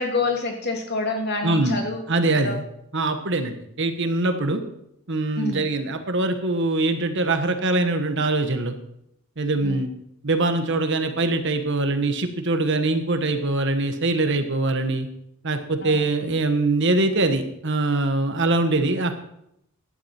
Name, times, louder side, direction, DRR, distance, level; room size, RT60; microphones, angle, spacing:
voice 1, 0.0-2.0 2.4-2.6 5.4-5.6 9.6-9.8 15.8-16.0, left 3 dB, 50° left, 2 dB, 2.9 m, -27 dB
voice 2, 1.4-1.8 2.1-2.7 2.9-4.6 5.1-8.7 9.4-9.9 10.2-15.1 15.4-19.2, right 2 dB, 55° right, 7 dB, 1.4 m, -23 dB
16.5 x 11.5 x 4.4 m, 0.77 s
head